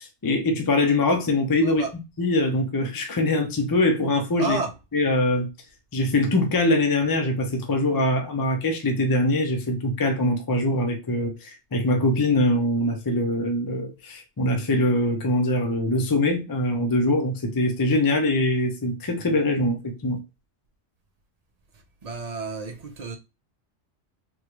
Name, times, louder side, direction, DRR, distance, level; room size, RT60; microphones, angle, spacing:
voice 1, 0.0-4.6 4.9-5.5 5.9-20.2, left 1 dB, 25° left, 0.4 m, -23 dB
voice 2, 4.4-4.7 22.0-23.2, right 3 dB, 45° right, 0.6 m, -30 dB
3.6 x 2.3 x 2.9 m
omnidirectional pair, 1.2 m